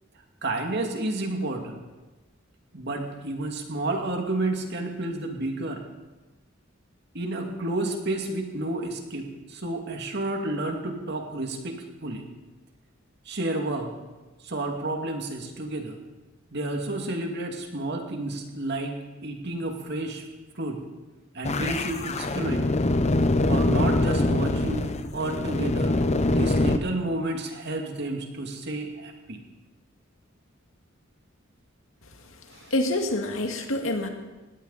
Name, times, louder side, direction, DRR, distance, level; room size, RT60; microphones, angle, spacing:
voice 1, 0.4-1.8 2.7-5.8 7.1-11.8 12.0-12.3 13.3-13.9 14.4-16.0 16.5-20.2 20.6-20.8 21.3-22.7 23.4-25.9 26.2-29.4 32.5-32.7, right 2 dB, 55° right, 3 dB, 2.4 m, -31 dB
sound 1, 21.4-26.8, left 2 dB, 35° left, 0.8 m, -24 dB
voice 2, 32.7-34.1, left 1 dB, 90° left, 4 dB, 2.1 m, -26 dB
20.0 x 17.0 x 4.2 m, 1.2 s
head